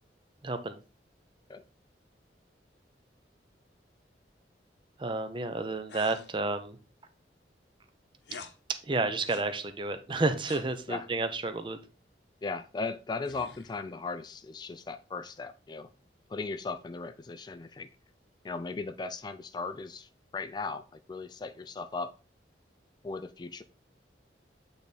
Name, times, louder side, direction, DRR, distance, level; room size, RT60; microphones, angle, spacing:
voice 1, 0.4-0.7 5.0-6.8 8.8-11.8, right 3 dB, 30° right, 9 dB, 0.6 m, -31 dB
sound 1, 5.9-6.3 8.2-8.6 9.3-9.5 10.5-10.7 13.2-13.9, left 6 dB, 75° left, 0.7 m, -47 dB
voice 2, 12.4-15.9 16.3-17.9 18.4-22.1 23.0-23.6, left 4 dB, 25° left, 11 dB, 0.3 m, -37 dB
8.4 x 3.5 x 4.1 m, 0.35 s
head